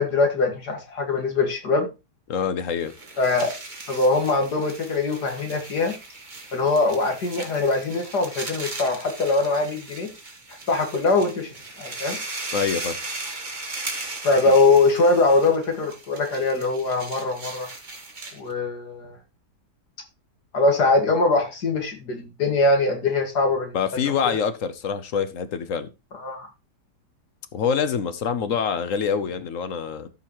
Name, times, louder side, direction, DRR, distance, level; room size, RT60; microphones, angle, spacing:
voice 1, 0.0-1.9 3.2-3.5 3.9-5.9 6.5-10.1 10.7-11.5 11.8-12.2 14.2-17.7 18.3-19.1 20.5-23.8 24.2-24.4 26.2-26.5, left 3 dB, 70° left, 2.6 m, -22 dB
voice 2, 2.3-2.9 12.5-13.0 23.7-25.9 27.5-30.1, left 7 dB, 55° left, 1.1 m, -25 dB
sound 1, 2.7-18.5, right 2 dB, 30° right, 1.7 m, -37 dB
13.5 x 5.5 x 3.0 m
omnidirectional pair, 1.8 m